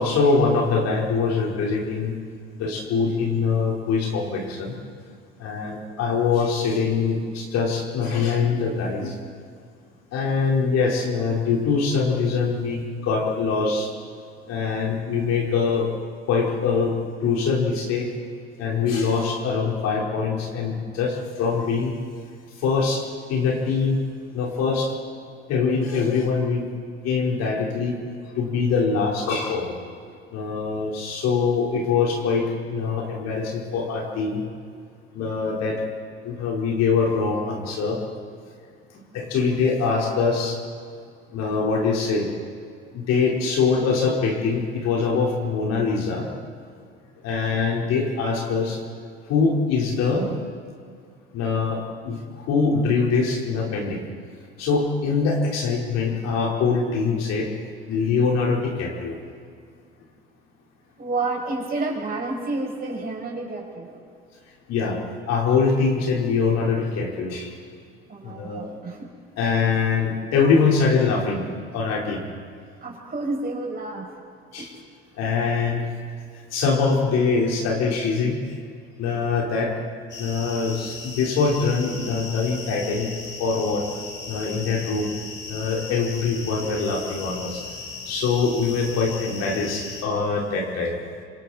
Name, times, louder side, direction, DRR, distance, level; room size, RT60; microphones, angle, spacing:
voice 1, 0.0-2.1 2.6-4.7 5.4-9.1 10.1-13.9 14.5-15.9 16.3-16.9 17.2-18.1 18.6-21.9 22.6-24.0 24.3-24.9 25.5-26.6 27.0-28.0 28.3-29.7 30.3-34.4 35.1-35.8 36.2-38.0 39.1-40.6 41.3-42.3 42.9-46.3 47.2-48.8 49.3-50.3 51.3-54.0 54.6-57.5 57.9-59.2 64.7-65.0 65.3-67.5 68.2-68.7 69.4-71.4 71.7-72.2 74.5-74.7 75.2-75.8 76.5-78.4 79.0-79.7 80.2-83.1 83.4-83.9 84.3-85.1 85.5-87.6 88.1-91.0, left 5 dB, 55° left, -2 dB, 4.6 m, -23 dB
voice 2, 61.0-64.0 68.1-69.1 72.8-74.1 74.6-74.7, right 3 dB, 30° right, -1 dB, 7.0 m, -30 dB
sound 1, 80.1-90.0, left 4 dB, 35° left, 4.2 m, -37 dB
26.5 x 26.0 x 4.4 m, 2.2 s
hypercardioid pair, 65°, 30 cm